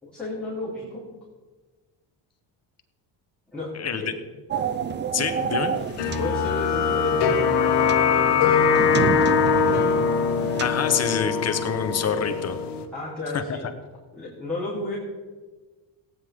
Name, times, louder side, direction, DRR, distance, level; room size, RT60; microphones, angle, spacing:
voice 1, 0.0-1.1 3.5-4.1 6.2-9.9 12.9-13.7 14.1-15.0, left 2 dB, ahead, -10 dB, 3.2 m, -34 dB
sound 1, 4.5-11.0, right 6 dB, 25° right, 0.5 m, -31 dB
voice 2, 5.1-5.7 10.6-12.6 13.3-13.4, left 7 dB, 35° left, 8 dB, 1.0 m, -26 dB
sound 2, 6.0-12.8, left 6 dB, 65° left, 1.5 m, -22 dB
17.0 x 9.6 x 3.6 m, 1.3 s
cardioid pair, 135°, 44 cm